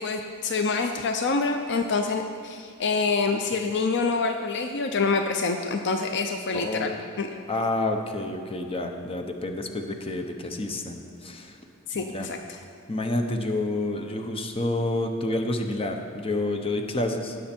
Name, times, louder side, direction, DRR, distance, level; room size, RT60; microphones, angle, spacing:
voice 1, 0.0-7.3 11.9-12.6, left 4 dB, 55° left, 5 dB, 0.5 m, -26 dB
voice 2, 6.5-6.9 7.5-11.6 11.9-12.3 12.9-17.4, left 2 dB, 25° left, 4 dB, 0.8 m, -29 dB
17.5 x 6.5 x 4.4 m, 2.4 s
head